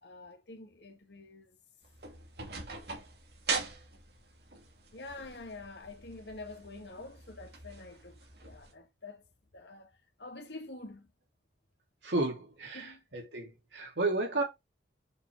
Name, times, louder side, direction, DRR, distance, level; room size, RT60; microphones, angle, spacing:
voice 1, 0.0-1.6 4.9-9.2 9.5-9.9 10.2-11.1 12.7-13.0, left 2 dB, 80° left, 2.0 m, -47 dB
sound 1, 1.8-8.7, right 4 dB, 65° right, 2.7 m, -41 dB
voice 2, 12.0-14.4, right 2 dB, 90° right, 3.1 m, -32 dB
6.7 x 5.2 x 4.7 m
head